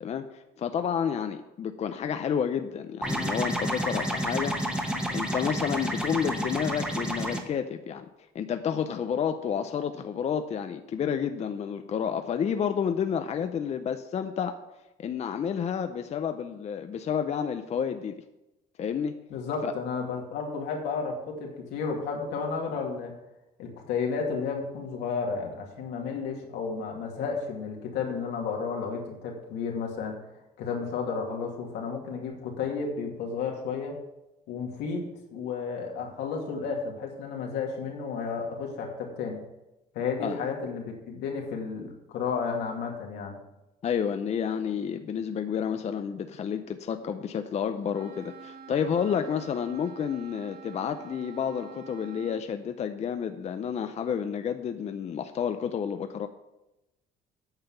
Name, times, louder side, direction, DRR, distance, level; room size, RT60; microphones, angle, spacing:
voice 1, 0.0-4.6 5.1-8.1 8.3-14.5 15.0-18.1 18.8-19.2 19.6-19.7 40.2-40.4 43.8-56.3, left 7 dB, 40° left, 8 dB, 0.6 m, -30 dB
sound 1, 3.0-7.4, equal, 5° right, 1.4 m, -30 dB
voice 2, 19.3-23.1 23.6-30.2 30.6-33.9 34.5-39.4 39.9-43.4, left 5 dB, 85° left, 0 dB, 2.4 m, -32 dB
Wind instrument woodwind instrument, 47.9-52.5, right 6 dB, 65° right, 1.1 m, -47 dB
8.9 x 5.7 x 7.1 m, 0.95 s
cardioid pair, 110°, 17 cm